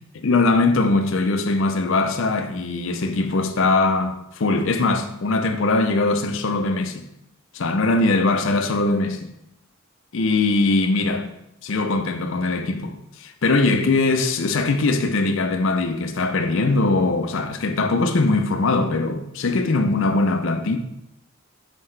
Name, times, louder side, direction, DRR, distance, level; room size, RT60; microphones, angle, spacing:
voice 1, 0.2-7.0 7.5-9.3 10.1-11.3 11.6-20.8, left 3 dB, 60° left, 0.5 m, -21 dB
5.6 x 5.3 x 3.3 m
head